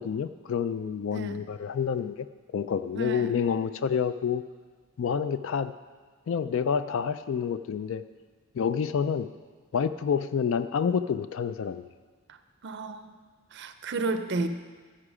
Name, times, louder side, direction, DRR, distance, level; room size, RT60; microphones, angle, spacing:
voice 1, 0.0-2.3 2.5-4.4 5.0-5.7 6.3-8.0 8.6-9.3 9.7-11.8, left 7 dB, 60° left, 12 dB, 0.3 m, -28 dB
voice 2, 1.1-1.4 2.9-3.4 12.3-12.4 12.6-13.1 13.5-14.5, right 3 dB, 50° right, 9 dB, 0.5 m, -32 dB
15.0 x 5.7 x 4.9 m, 1.5 s
head